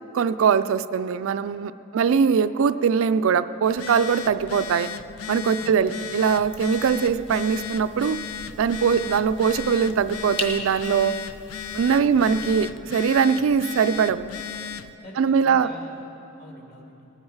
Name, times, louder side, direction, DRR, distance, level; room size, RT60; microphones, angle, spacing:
voice 1, 0.1-4.9 5.3-8.2 8.6-11.2 11.7-14.3 15.2-15.7, right 6 dB, 65° right, 12 dB, 0.3 m, -21 dB
Telephone, 3.7-14.9, left 8 dB, 75° left, 0.5 m, -36 dB
voice 2, 5.6-6.0 8.9-9.0 12.0-12.2 15.0-16.0 16.4-17.1, equal, 45° left, -1 dB, 2.2 m, -45 dB
sound 1, 6.3-12.7, left 1 dB, 25° left, 1.2 m, -40 dB
19.0 x 9.5 x 4.7 m, 2.9 s
head